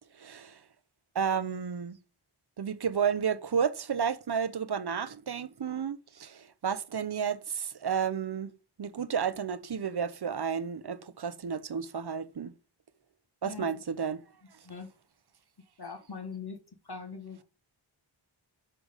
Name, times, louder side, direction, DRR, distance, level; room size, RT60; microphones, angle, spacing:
voice 1, 0.2-0.6 1.1-2.0 2.6-8.5 8.8-12.5 13.4-14.2, right 7 dB, 55° right, 0.6 m, -32 dB
voice 2, 15.8-16.6 16.8-17.4, left 5 dB, 50° left, 1.2 m, -41 dB
6.3 x 3.4 x 5.0 m
wide cardioid pair, 45°, 49 cm